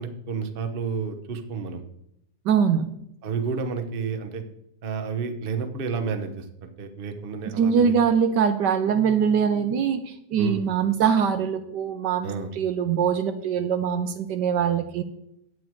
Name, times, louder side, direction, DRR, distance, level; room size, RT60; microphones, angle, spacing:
voice 1, 0.0-1.8 3.2-4.4 4.8-7.9 10.4-10.6 12.2-12.5, right 5 dB, 40° right, 6 dB, 0.9 m, -30 dB
voice 2, 2.5-2.9 7.6-10.0 10.3-12.3 12.6-15.0, right 7 dB, 70° right, 9 dB, 1.3 m, -22 dB
9.5 x 8.5 x 4.6 m, 0.77 s
omnidirectional pair, 2.0 m